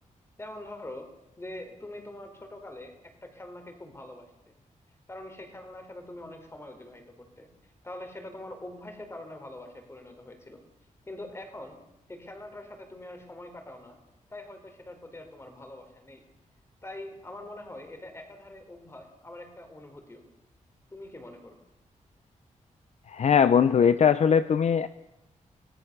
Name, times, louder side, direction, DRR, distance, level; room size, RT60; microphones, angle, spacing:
voice 1, 0.4-1.1 1.4-4.6 5.1-7.5 7.8-10.6 11.1-11.8 12.1-14.0 14.3-16.2 16.8-20.2 20.9-21.6, left 1 dB, 20° left, 6 dB, 4.2 m, -44 dB
voice 2, 23.1-24.9, left 7 dB, 55° left, 13 dB, 0.7 m, -20 dB
26.0 x 19.0 x 6.8 m, 0.90 s
wide cardioid pair, 150°, 13 cm